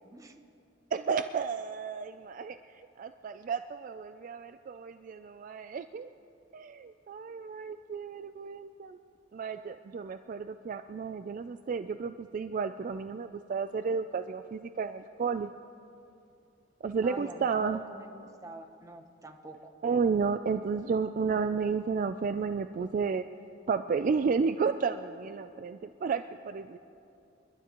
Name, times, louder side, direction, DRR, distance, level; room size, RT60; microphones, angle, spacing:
voice 1, 0.9-2.6 3.0-6.1 6.5-9.0 9.3-15.5 16.8-17.8 19.8-23.2 23.7-26.8, right 5 dB, 45° right, 10 dB, 0.3 m, -32 dB
voice 2, 17.0-19.7, right 2 dB, 20° right, 5 dB, 0.8 m, -46 dB
28.5 x 12.0 x 3.0 m, 2.6 s
head